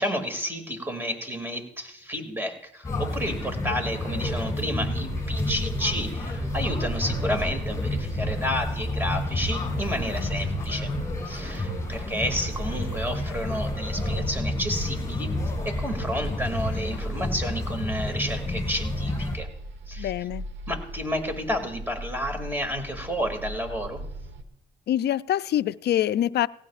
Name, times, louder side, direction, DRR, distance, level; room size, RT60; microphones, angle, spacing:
voice 1, 0.0-10.9 11.3-15.4 15.6-19.5 19.9-20.1 20.7-24.0, equal, 10° right, 2.4 m, -31 dB
sound 1, 2.8-19.4, left 1 dB, 15° left, 6.1 m, -30 dB
sound 2, 4.7-24.4, right 1 dB, 65° right, 1.3 m, -39 dB
voice 2, 9.9-10.3 20.0-20.4 24.9-26.5, left 11 dB, 55° left, 0.4 m, -25 dB
18.5 x 16.0 x 2.5 m
cardioid pair, 90°, 20 cm